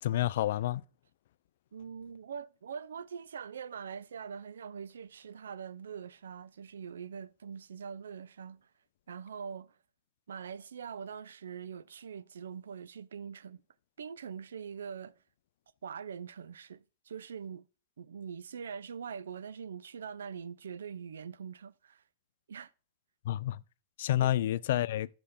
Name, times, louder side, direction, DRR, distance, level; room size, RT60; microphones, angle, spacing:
voice 1, 0.0-0.8 23.3-23.6 24.0-25.1, left 13 dB, 65° left, 0.3 m, -29 dB
voice 2, 1.7-8.7 9.1-9.8 10.3-13.6 14.0-15.1 15.8-17.7 18.0-22.0 22.5-22.7 24.2-24.4, right 7 dB, 80° right, 0.4 m, -43 dB
5.7 x 5.6 x 5.0 m
hypercardioid pair, 110°, 0 cm